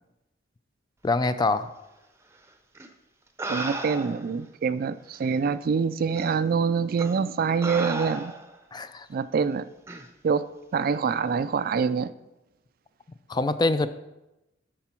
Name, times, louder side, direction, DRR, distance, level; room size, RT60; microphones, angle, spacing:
voice 1, 1.0-1.7 8.7-9.1 13.3-13.9, left 3 dB, 20° left, 12 dB, 0.4 m, -24 dB
sound 1, 2.7-2.9 3.4-4.3 5.2-5.3 6.1-6.3 7.0-7.2 7.6-8.6 9.9-10.1, right 2 dB, 15° right, 0.6 m, -34 dB
voice 2, 3.5-8.3 9.1-9.6 10.2-12.1, right 5 dB, 50° right, 14 dB, 0.3 m, -25 dB
13.0 x 4.7 x 4.4 m, 0.95 s
head